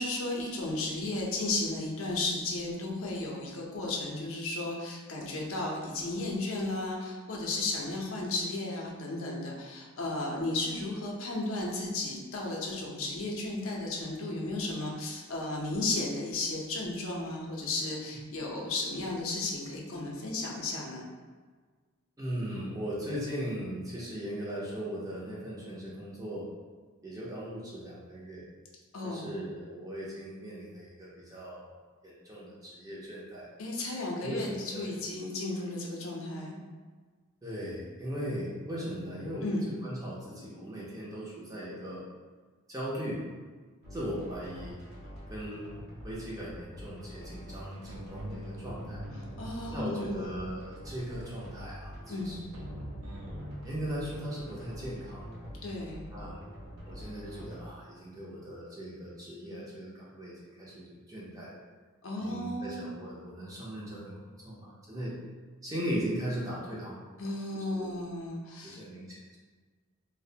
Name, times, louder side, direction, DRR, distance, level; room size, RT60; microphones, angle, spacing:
voice 1, 0.0-21.0 28.9-29.4 33.6-36.6 39.4-39.7 49.4-50.3 52.1-52.3 55.6-56.0 62.0-62.8 67.2-68.8, left 2 dB, 65° left, -2 dB, 0.5 m, -34 dB
voice 2, 22.2-26.5 27.0-28.5 29.0-31.7 32.0-33.5 34.2-35.0 35.5-35.6 37.4-42.1 42.7-43.3 43.9-44.8 45.3-49.0 49.7-52.5 53.6-55.3 56.1-56.4 56.9-61.6 62.2-65.2 65.6-67.2 67.5-67.9 68.6-69.4, equal, 15° right, -6 dB, 0.4 m, -38 dB
sound 1, 43.8-57.6, equal, 50° right, 0.7 m, -46 dB
sound 2, 47.9-53.6, equal, 85° right, 0.5 m, -44 dB
2.4 x 2.0 x 2.7 m, 1.4 s
head